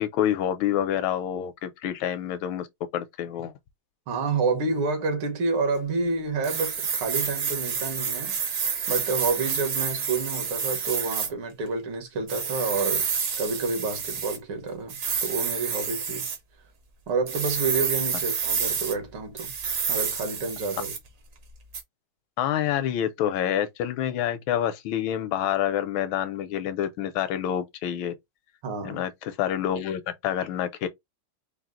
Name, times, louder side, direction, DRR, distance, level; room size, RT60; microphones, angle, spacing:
voice 1, 0.0-2.7 2.9-3.5 22.4-28.1 28.8-30.9, left 10 dB, 75° left, 1.4 m, -27 dB
voice 2, 4.1-8.4 8.9-16.3 17.1-19.5 19.9-20.9 28.6-29.0, right 4 dB, 75° right, 2.1 m, -29 dB
sound 1, 6.4-11.3 12.3-14.4 14.9-16.4 17.3-18.9 19.4-21.1 21.7-21.8, right 6 dB, 55° right, 1.0 m, -29 dB
4.5 x 2.1 x 3.6 m
omnidirectional pair, 2.3 m